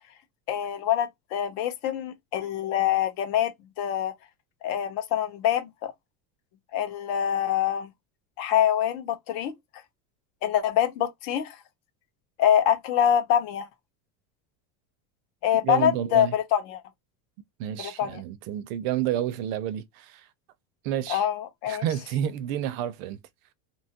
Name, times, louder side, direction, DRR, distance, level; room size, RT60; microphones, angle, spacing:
voice 1, 0.5-3.5 3.8-4.1 4.6-5.9 6.7-7.9 8.4-9.5 10.4-11.6 12.4-13.7 15.4-16.8 17.8-18.2 21.1-21.8, left 10 dB, 45° left, 0.6 m, -25 dB
voice 2, 15.6-16.3 17.6-20.3 20.8-21.3 21.7-23.2, right 11 dB, 60° right, 0.5 m, -30 dB
2.8 x 2.3 x 2.7 m
cardioid pair, 175°, 48 cm